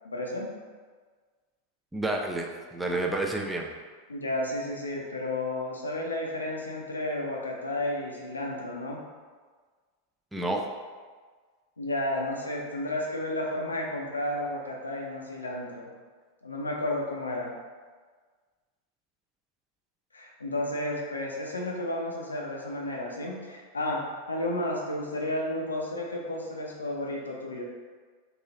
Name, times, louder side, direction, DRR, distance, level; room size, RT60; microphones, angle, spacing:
voice 1, 0.0-0.5 4.1-9.0 11.8-15.9 16.4-17.5 20.1-24.0 24.3-27.6, left 1 dB, 75° left, -1 dB, 0.6 m, -32 dB
voice 2, 1.9-3.7 10.3-10.6, right 2 dB, 5° right, 0 dB, 0.4 m, -30 dB
3.0 x 2.8 x 3.6 m, 1.5 s
figure-of-eight pair, 90°, 0 cm